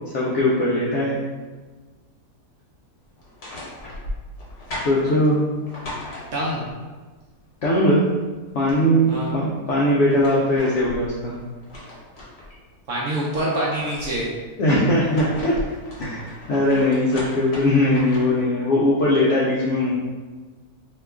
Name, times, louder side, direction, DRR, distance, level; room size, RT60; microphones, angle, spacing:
voice 1, 0.1-1.2 4.8-5.5 7.6-8.1 8.5-11.3 14.6-15.6 16.0-16.2 16.5-19.9, left 1 dB, 75° left, -5 dB, 0.6 m, -20 dB
sound 1, 3.2-6.7 8.1-8.2 8.5-9.3 9.8-12.5 12.9-14.2 14.8-18.4, left 1 dB, 50° left, 1.0 m, -37 dB
voice 2, 6.3-6.6 9.1-9.3 12.9-14.3, right 1 dB, 70° right, -5 dB, 0.7 m, -25 dB
2.9 x 2.3 x 3.4 m, 1.3 s
omnidirectional pair, 1.8 m